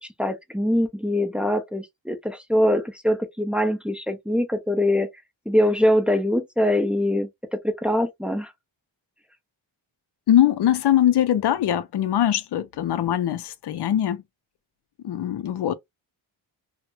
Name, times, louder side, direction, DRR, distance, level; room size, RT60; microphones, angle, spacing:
voice 1, 0.0-5.1 5.5-8.5, left 1 dB, ahead, 0.4 m, -23 dB
voice 2, 10.3-14.2 15.0-15.8, left 11 dB, 60° left, 0.5 m, -22 dB
2.9 x 2.1 x 2.2 m
wide cardioid pair, 95°, 48 cm